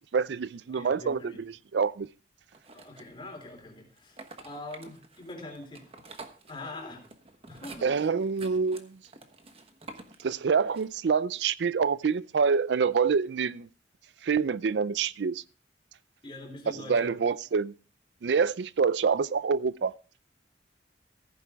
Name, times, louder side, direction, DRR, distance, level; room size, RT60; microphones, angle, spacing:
voice 1, 0.1-2.1 7.8-9.0 10.2-13.7 14.2-15.4 16.7-17.7 18.2-19.9, right 5 dB, 70° right, 0.4 m, -26 dB
voice 2, 0.7-1.5 2.7-5.8 6.5-7.0 7.5-7.9 16.2-17.2, left 2 dB, 25° left, 3.5 m, -43 dB
sound 1, 2.5-3.4 4.0-11.1, right 3 dB, 35° right, 1.2 m, -49 dB
15.0 x 9.3 x 3.5 m
head